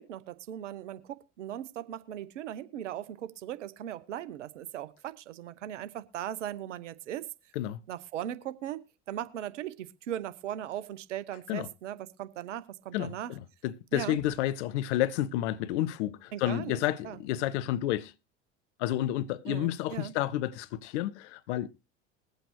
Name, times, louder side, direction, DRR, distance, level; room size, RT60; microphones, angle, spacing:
voice 1, 0.0-7.3 7.9-13.3 13.9-14.2 16.3-17.2 19.5-20.1, right 11 dB, 80° right, 1.0 m, -38 dB
voice 2, 12.9-18.1 18.8-21.7, left 13 dB, 70° left, 0.8 m, -30 dB
21.0 x 7.9 x 3.1 m
hypercardioid pair, 75°, 36 cm